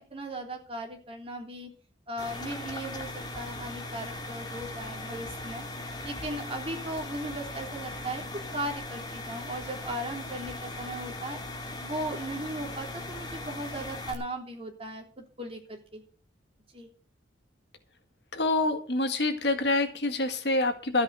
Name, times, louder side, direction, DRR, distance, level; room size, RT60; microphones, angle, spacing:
voice 1, 0.0-1.7 2.1-5.7 6.0-8.2 8.5-11.4 11.8-16.0 16.7-16.9, right 1 dB, 30° right, 2 dB, 3.2 m, -37 dB
sound 1, 2.2-14.1, left 2 dB, 25° left, 2.4 m, -39 dB
voice 2, 18.3-21.0, left 2 dB, 60° left, 7 dB, 1.9 m, -26 dB
13.5 x 8.2 x 6.8 m, 0.40 s
head